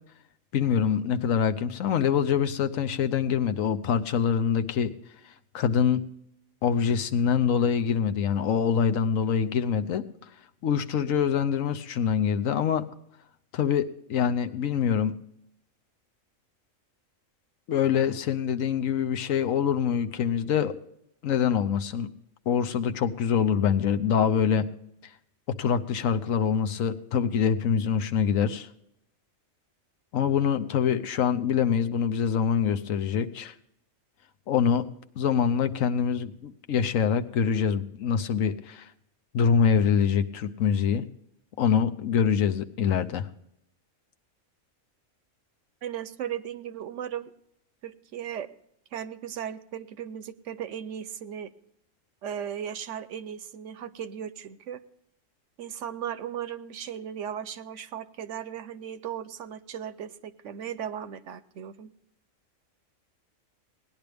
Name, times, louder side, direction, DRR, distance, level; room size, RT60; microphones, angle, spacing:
voice 1, 0.5-4.9 5.5-6.0 6.6-10.1 10.6-12.9 13.5-15.2 17.7-20.8 21.2-22.1 22.5-24.7 25.5-28.7 30.1-33.5 34.5-34.8 35.2-38.9 39.3-41.1 41.6-43.3, left 7 dB, 80° left, 9 dB, 1.2 m, -25 dB
voice 2, 45.8-47.3 47.8-48.5 48.9-51.5 52.2-54.8 55.6-61.9, right 9 dB, 70° right, 13 dB, 1.0 m, -36 dB
18.5 x 10.5 x 3.4 m, 0.76 s
omnidirectional pair, 1.4 m